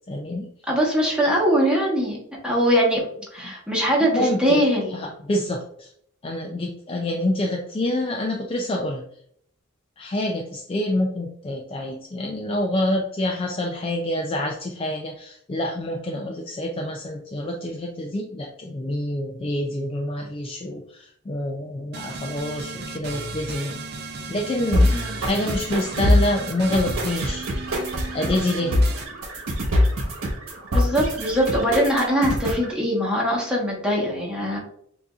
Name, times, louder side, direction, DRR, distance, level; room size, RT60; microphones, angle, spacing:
voice 1, 0.1-0.5 3.4-3.5 4.1-4.6 4.9-5.9 6.2-9.0 10.0-23.8 24.3-27.5 28.1-28.8, left 1 dB, 25° left, 2 dB, 0.3 m, -27 dB
voice 2, 0.7-2.2 2.4-5.0 24.9-25.2 30.7-34.6, equal, 5° right, -4 dB, 1.1 m, -22 dB
sound 1, 21.9-29.0, right 3 dB, 50° right, 0.5 m, -35 dB
sound 2, 24.7-32.7, left 1 dB, 90° right, 1.3 m, -24 dB
6.8 x 2.6 x 2.4 m, 0.68 s
head